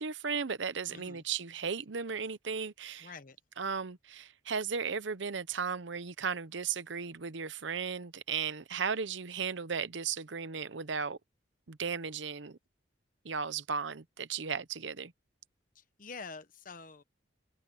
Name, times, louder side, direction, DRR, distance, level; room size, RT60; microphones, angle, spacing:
voice 1, 0.0-3.1 3.6-11.2 11.7-12.6 13.2-15.1, right 6 dB, 70° right, 0.8 m, -35 dB
voice 2, 0.9-1.2 3.0-3.4 15.7-17.0, left 4 dB, 45° left, 1.1 m, -47 dB
head